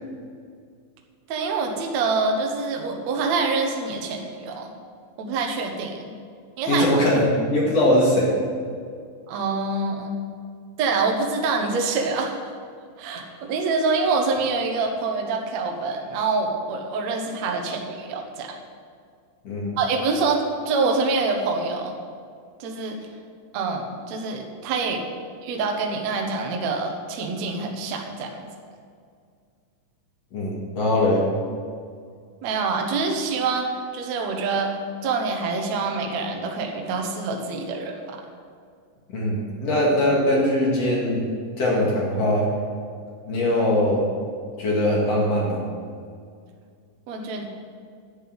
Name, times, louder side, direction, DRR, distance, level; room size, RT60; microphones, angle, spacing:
voice 1, 1.3-4.7 5.2-6.1 6.6-7.0 9.3-10.2 10.8-12.4 13.0-18.6 19.8-21.9 22.6-23.0 23.5-25.0 25.4-28.4 32.4-34.8 35.0-38.2 47.1-47.5, right 4 dB, 80° right, 2 dB, 1.5 m, -26 dB
voice 2, 6.7-8.3 19.4-19.8 30.3-31.2 39.1-41.3 41.6-42.5 43.2-44.1 44.6-45.6, left 1 dB, 50° left, -4 dB, 2.2 m, -21 dB
11.0 x 6.9 x 8.0 m, 2.2 s
omnidirectional pair, 5.2 m